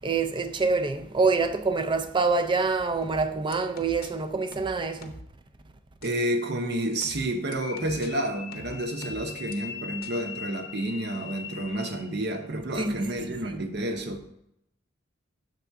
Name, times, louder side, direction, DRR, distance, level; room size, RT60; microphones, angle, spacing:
voice 1, 0.0-5.2 12.8-12.9 13.4-13.6, right 4 dB, 25° right, 0.4 m, -26 dB
sound 1, 3.0-4.1 4.5-5.3 6.0-6.1 7.0-8.1 8.5-9.5 10.0-10.1, left 2 dB, 50° left, 0.7 m, -44 dB
voice 2, 6.0-14.3, right 1 dB, 55° right, 0.8 m, -30 dB
sound 2, 7.5-12.2, left 7 dB, 85° left, 0.7 m, -41 dB
6.9 x 3.7 x 4.6 m
head